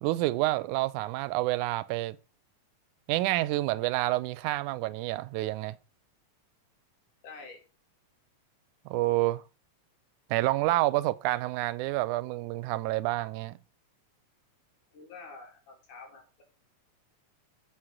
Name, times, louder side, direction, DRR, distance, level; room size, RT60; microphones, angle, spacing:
voice 1, 0.0-2.2 3.1-5.7 8.9-9.4 10.3-13.6, right 17 dB, 90° right, 2.1 m, -28 dB
voice 2, 7.2-7.6 14.9-16.4, left 4 dB, 90° left, 4.4 m, -47 dB
8.0 x 6.3 x 5.9 m
omnidirectional pair, 3.4 m